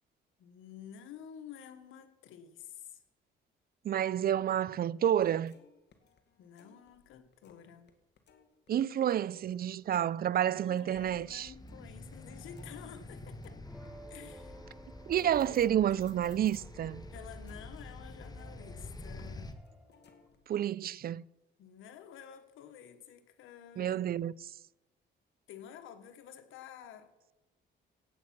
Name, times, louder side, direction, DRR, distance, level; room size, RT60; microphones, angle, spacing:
voice 1, 0.4-3.0 6.4-7.9 10.5-13.6 14.1-14.7 17.1-19.6 21.6-24.0 25.5-27.1, left 9 dB, 85° left, 1.4 m, -51 dB
voice 2, 3.8-5.6 8.7-11.5 15.1-17.0 20.5-21.2 23.8-24.3, right 10 dB, 50° right, 0.5 m, -29 dB
sound 1, 5.2-7.9 8.2-16.8 17.2-20.4, left 6 dB, 60° left, 2.1 m, -63 dB
sound 2, 10.9-19.5, left 2 dB, 20° left, 1.6 m, -48 dB
sound 3, 13.7-20.3, right 1 dB, 5° right, 2.0 m, -55 dB
17.5 x 8.5 x 6.1 m
cardioid pair, 90°, 20 cm